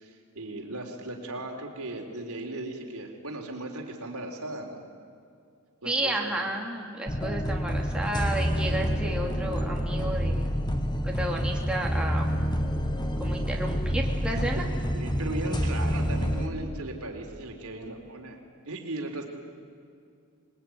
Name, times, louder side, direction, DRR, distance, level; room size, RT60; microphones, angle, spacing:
voice 1, 0.0-4.8 5.8-6.4 14.3-19.2, right 2 dB, 75° right, 2 dB, 4.1 m, -37 dB
voice 2, 5.8-10.5 11.0-12.3 13.2-14.6, right 1 dB, 5° right, -1 dB, 2.7 m, -32 dB
sound 1, 7.1-16.5, equal, 20° left, 1.6 m, -28 dB
26.5 x 21.5 x 9.5 m, 2.4 s
head